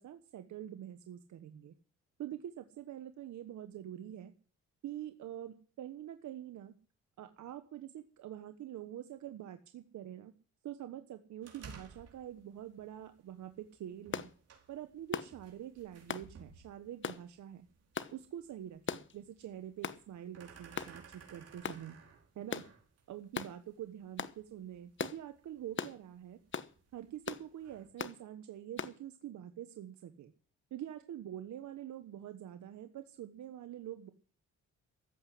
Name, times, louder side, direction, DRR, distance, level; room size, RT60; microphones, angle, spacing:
voice 1, 0.0-1.7 2.2-4.3 4.8-6.7 7.2-10.3 10.6-14.3 14.7-17.7 18.1-22.0 22.4-22.6 23.1-26.4 26.9-30.3 30.7-34.1, right 11 dB, 70° right, 8 dB, 1.3 m, -46 dB
sound 1, 11.4-27.9, right 5 dB, 55° right, 4.9 m, -59 dB
sound 2, 14.1-14.3 15.1-15.3 16.1-16.3 17.0-17.2 18.0-18.1 18.9-19.1 19.8-20.0 20.8-21.0 21.6-21.8 22.5-22.7 23.3-23.5 24.2-24.4 25.0-25.2 25.8-26.0 26.5-26.7 27.3-27.5 28.0-28.2 28.8-29.0, left 7 dB, 40° left, 1.1 m, -38 dB
14.5 x 8.2 x 10.0 m, 0.41 s
cardioid pair, 90°, 30 cm